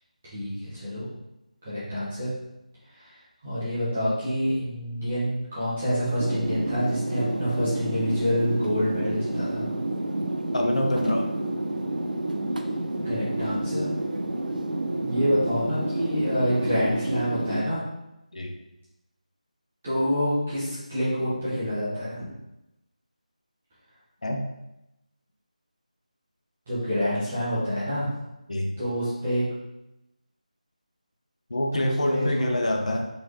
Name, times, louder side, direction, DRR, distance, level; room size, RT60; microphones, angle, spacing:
voice 1, 0.2-1.1 1.6-2.3 3.0-3.1 3.4-9.7 13.0-13.9 15.0-17.8 19.8-22.3 26.7-28.1 28.8-29.4 31.7-32.6, equal, 5° right, -12 dB, 0.3 m, -27 dB
sound 1, 6.2-17.6, right 1 dB, 85° right, 0.5 m, -29 dB
voice 2, 10.5-11.3 18.3-18.6 24.2-24.5 28.5-28.7 31.5-33.1, left 1 dB, 55° left, 3 dB, 0.6 m, -25 dB
3.8 x 2.9 x 3.2 m, 0.91 s
figure-of-eight pair, 180°, 4 cm